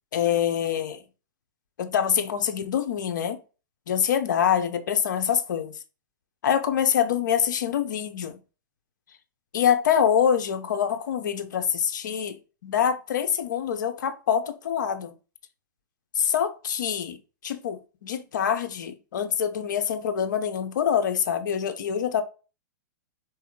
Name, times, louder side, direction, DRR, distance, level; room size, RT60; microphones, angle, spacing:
voice 1, 0.1-1.0 1.8-3.4 3.9-5.8 6.4-8.4 9.5-12.4 12.6-15.1 16.2-17.2 17.4-22.2, left 8 dB, 75° left, 0.8 m, -25 dB
4.7 x 3.0 x 3.7 m
hypercardioid pair, 115°, 10 cm